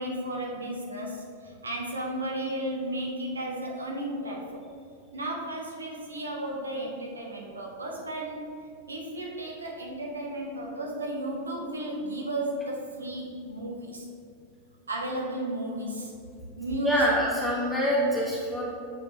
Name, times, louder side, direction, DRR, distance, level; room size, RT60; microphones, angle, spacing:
voice 1, 0.0-4.6 5.1-8.4 8.9-14.1 14.9-16.1 16.6-17.2, right 1 dB, 75° right, -1 dB, 1.0 m, -34 dB
voice 2, 16.8-18.6, equal, ahead, -8 dB, 1.3 m, -25 dB
6.7 x 5.2 x 3.0 m, 2.5 s
figure-of-eight pair, 90°, 0 cm